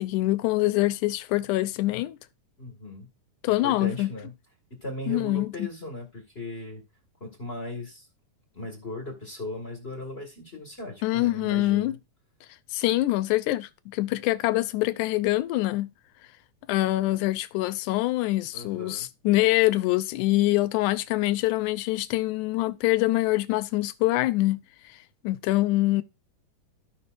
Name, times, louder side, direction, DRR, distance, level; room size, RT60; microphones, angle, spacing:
voice 1, 0.0-2.2 3.4-4.1 5.1-5.7 11.0-12.0 12.7-15.9 16.7-24.6 25.2-26.0, left 17 dB, 80° left, 2.0 m, -25 dB
voice 2, 2.6-3.1 3.4-4.3 4.7-6.8 7.2-8.0 8.5-12.0 18.5-19.1, left 1 dB, 25° left, 1.6 m, -37 dB
14.5 x 5.7 x 2.6 m
omnidirectional pair, 3.6 m